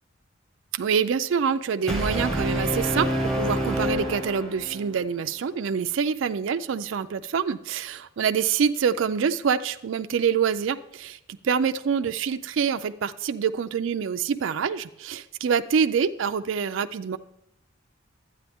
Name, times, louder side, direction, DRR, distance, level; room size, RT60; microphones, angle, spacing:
voice 1, 0.7-11.2 11.4-17.2, right 6 dB, 65° right, 9 dB, 0.4 m, -26 dB
Brass instrument, 1.9-5.0, equal, 5° left, 1.4 m, -27 dB
11.5 x 9.1 x 3.5 m, 0.86 s
head